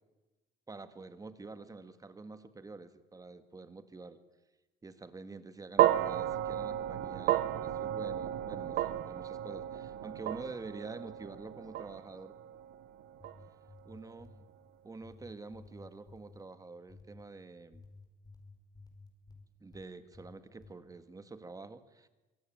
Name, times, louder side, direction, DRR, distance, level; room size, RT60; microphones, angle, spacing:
voice 1, 0.7-4.2 4.8-12.3 13.9-14.4 14.8-17.8 19.6-22.1, right 3 dB, 20° right, 11 dB, 1.7 m, -47 dB
sound 1, 5.8-14.1, right 12 dB, 80° right, 1.0 m, -33 dB
sound 2, 13.0-14.5 15.0-16.4 16.9-17.3 17.7-19.9 20.1-20.8, left 3 dB, 20° left, 4.9 m, -54 dB
25.0 x 17.5 x 9.1 m, 1.1 s
cardioid pair, 110°, 17 cm